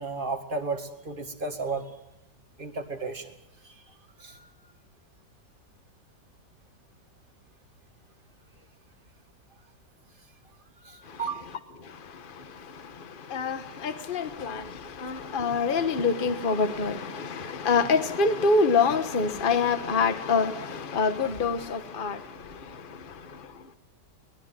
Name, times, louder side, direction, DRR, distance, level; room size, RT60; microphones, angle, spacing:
voice 1, 0.0-1.9 2.6-3.3 4.2-4.5 10.8-11.4, right 4 dB, 30° right, 2.1 m, -33 dB
voice 2, 13.3-14.7 15.0-22.2, left 4 dB, 30° left, 1.4 m, -25 dB
23.0 x 19.5 x 7.6 m
omnidirectional pair, 1.9 m